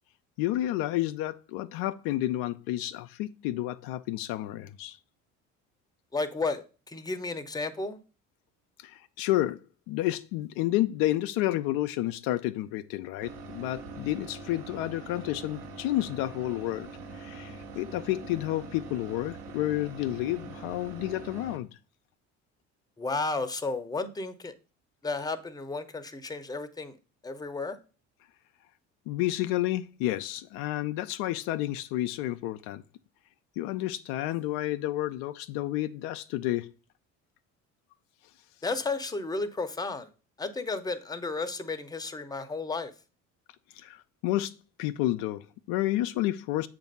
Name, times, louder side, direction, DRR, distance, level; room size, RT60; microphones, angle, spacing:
voice 1, 0.4-5.0 8.8-9.6 9.9-21.7 29.1-32.8 33.6-36.7 43.7-44.5 44.8-46.7, left 15 dB, 70° left, 0.5 m, -30 dB
voice 2, 6.1-8.0 23.0-24.5 25.0-26.9 27.2-27.8 38.6-40.1 40.4-42.9, left 3 dB, 10° left, 0.7 m, -33 dB
sound 1, 13.2-21.6, right 3 dB, 65° right, 1.3 m, -43 dB
7.0 x 2.6 x 5.2 m
hypercardioid pair, 65°, 37 cm